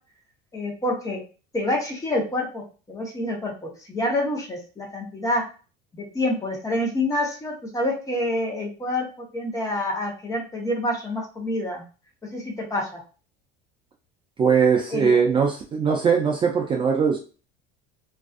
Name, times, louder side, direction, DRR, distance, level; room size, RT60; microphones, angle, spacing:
voice 1, 0.5-1.2 1.5-3.5 3.9-5.4 5.9-11.8 12.3-13.0 14.9-15.2, left 1 dB, 15° left, 0 dB, 0.8 m, -27 dB
voice 2, 14.4-17.2, right 6 dB, 25° right, 0 dB, 0.4 m, -20 dB
2.5 x 2.3 x 2.3 m, 0.35 s
supercardioid pair, 120°, 21 cm